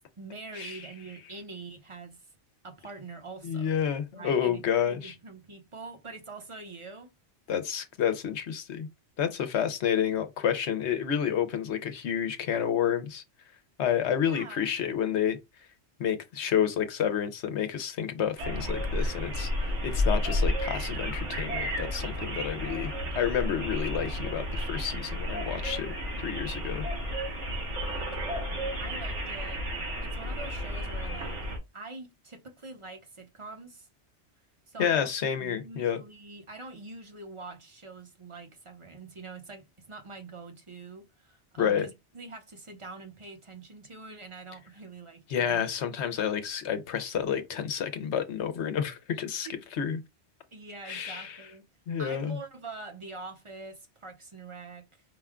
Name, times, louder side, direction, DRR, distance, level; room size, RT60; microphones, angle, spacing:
voice 1, 0.2-2.2 2.6-3.7 4.1-4.6 4.9-7.1 14.3-14.7 27.8-29.6 30.0-31.4 31.7-33.9 34.7-35.1 35.4-45.6 49.4-49.6 50.5-51.6 52.0-55.0, right 3 dB, 30° right, 0.9 m, -44 dB
voice 2, 3.4-5.1 7.5-8.9 9.2-13.2 13.8-15.4 16.0-25.9 26.2-26.9 34.8-36.0 41.6-41.9 45.3-50.0 50.8-51.4 51.9-52.4, left 8 dB, 80° left, 1.0 m, -29 dB
sound 1, 18.4-31.6, equal, 85° right, 2.0 m, -32 dB
4.9 x 2.3 x 3.6 m
omnidirectional pair, 1.2 m